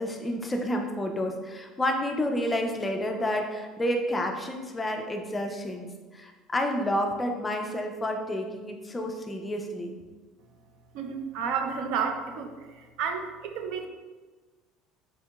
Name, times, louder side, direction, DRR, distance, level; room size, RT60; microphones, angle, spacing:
voice 1, 0.0-10.0, left 1 dB, 15° left, 3 dB, 0.3 m, -30 dB
voice 2, 10.9-13.9, right 6 dB, 65° right, 5 dB, 0.4 m, -31 dB
4.1 x 2.8 x 2.3 m, 1.3 s
cardioid pair, 140°, 0 cm